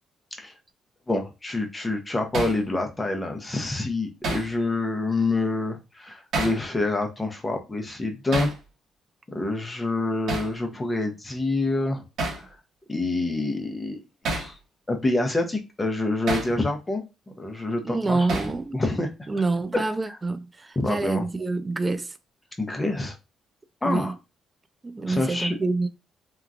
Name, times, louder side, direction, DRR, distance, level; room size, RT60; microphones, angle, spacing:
voice 1, 1.1-8.5 9.3-12.0 12.3-12.6 12.9-14.0 14.3-14.6 14.9-17.0 17.4-18.4 18.7-19.1 19.7-19.9 20.8-21.2 22.6-23.2 23.8-24.1 25.1-25.6, left 2 dB, 20° left, 0.7 m, -27 dB
Hammer, 2.3-2.6 4.2-4.5 6.3-6.6 8.3-8.6 10.3-10.5 12.2-12.4 14.2-14.5 16.3-16.5 18.3-18.6, right 2 dB, 70° right, 1.0 m, -28 dB
voice 2, 17.8-18.8 19.3-22.1 23.8-24.1 24.8-25.9, right 3 dB, 25° right, 0.4 m, -27 dB
2.9 x 2.2 x 2.5 m
cardioid pair, 90°, 0 cm